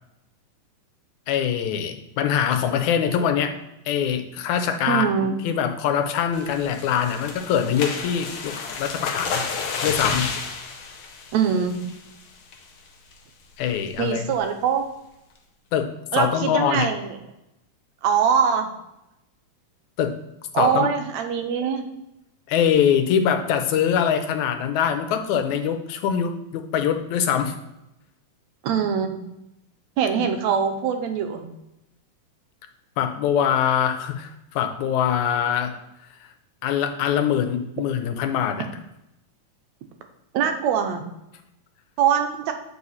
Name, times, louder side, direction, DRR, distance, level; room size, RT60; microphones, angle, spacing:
voice 1, 1.3-3.5 3.9-8.5 8.8-9.4 9.8-10.3 13.6-14.3 15.7-16.9 20.0-20.1 20.6-20.9 22.5-27.5 30.2-30.3 33.0-35.8 36.6-38.7, left 8 dB, 85° left, 6 dB, 2.2 m, -23 dB
voice 2, 4.9-5.3 11.3-11.8 14.0-14.9 16.1-17.2 18.0-18.7 20.5-21.8 28.6-29.2 30.0-31.5 40.3-41.0 42.0-42.5, right 7 dB, 75° right, 6 dB, 1.9 m, -22 dB
sound 1, 6.3-12.1 12.5-12.8 13.1-13.2 13.6-13.9, left 5 dB, 70° left, 1.2 m, -31 dB
8.5 x 4.7 x 4.2 m, 0.88 s
omnidirectional pair, 3.3 m